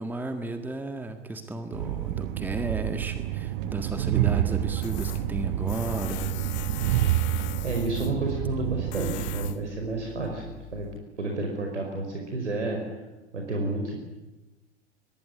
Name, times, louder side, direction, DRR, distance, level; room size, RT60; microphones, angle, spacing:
voice 1, 0.0-6.3, right 2 dB, 5° right, 7 dB, 1.7 m, -34 dB
Train, 1.7-9.5, right 14 dB, 45° right, 1.4 m, -28 dB
Tools, 4.8-11.0, left 11 dB, 30° left, 1.5 m, -41 dB
voice 2, 7.6-10.9 11.2-12.8 13.3-14.0, right 2 dB, 75° right, 2 dB, 5.2 m, -30 dB
24.0 x 22.0 x 9.6 m, 1.1 s
figure-of-eight pair, 100°, 35 cm